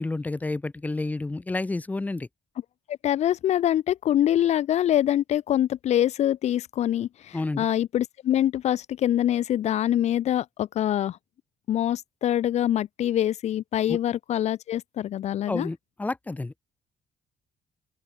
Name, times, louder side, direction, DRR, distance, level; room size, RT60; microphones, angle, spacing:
voice 1, 0.0-2.3 7.3-7.7 13.9-14.0 15.5-16.5, left 2 dB, 10° left, 4.0 m, -30 dB
voice 2, 2.9-11.2 11.7-15.7, left 11 dB, 60° left, 2.1 m, -24 dB
open air
cardioid pair, 170°, 13 cm